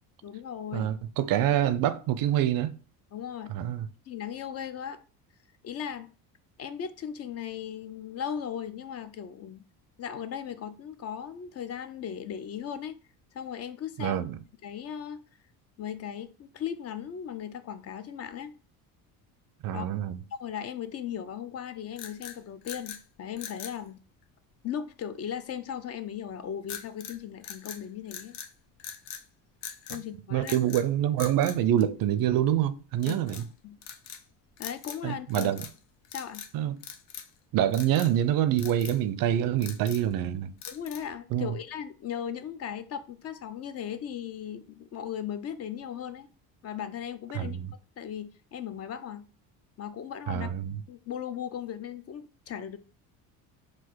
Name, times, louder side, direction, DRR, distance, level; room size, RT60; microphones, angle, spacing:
voice 1, 0.2-0.9 3.1-3.5 4.1-5.0 5.6-6.1 6.6-9.6 10.0-12.9 13.3-14.2 14.6-15.2 15.8-18.5 19.7-19.9 20.3-24.0 24.6-28.4 29.9-30.5 33.1-33.2 33.6-33.8 34.6-35.5 36.1-36.4 40.7-46.3 46.6-47.6 48.0-49.3 49.8-50.5 50.9-52.8, left 8 dB, 40° left, 0.4 m, -37 dB
voice 2, 0.7-2.8 3.5-3.9 14.0-14.4 19.6-20.2 30.3-33.4 35.0-35.7 36.5-36.8 37.5-40.5 41.3-41.5 47.3-47.7 50.3-50.8, right 11 dB, 55° right, 0.5 m, -26 dB
sound 1, 21.9-23.0 23.4-23.8 26.7-27.2 27.4-28.5 28.8-29.2 29.6-30.0 30.4-30.9 31.2-32.4 33.0-33.5 33.8-34.2 34.6-35.0 35.3-35.8 36.0-36.5 36.8-37.4 37.7-38.1 38.6-39.0 39.4-40.1 40.6-41.1, left 9 dB, 80° left, 0.7 m, -42 dB
4.0 x 2.4 x 4.5 m
cardioid pair, 110°, 40 cm